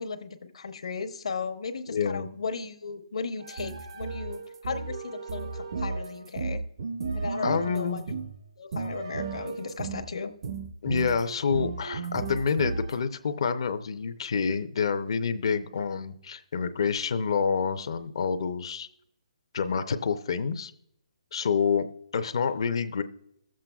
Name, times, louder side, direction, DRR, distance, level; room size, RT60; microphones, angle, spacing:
voice 1, 0.0-6.6 7.1-8.0 8.6-10.3, left 4 dB, 70° left, 8 dB, 1.0 m, -36 dB
voice 2, 1.9-2.3 7.4-8.0 10.8-18.9 19.5-20.7 21.3-21.9 22.1-23.0, left 6 dB, 50° left, 10 dB, 0.6 m, -27 dB
sound 1, 3.4-8.4 8.7-10.1 10.4-13.0, right 4 dB, 45° right, 0.5 m, -34 dB
21.5 x 7.4 x 2.3 m, 0.76 s
hypercardioid pair, 170°, 3 cm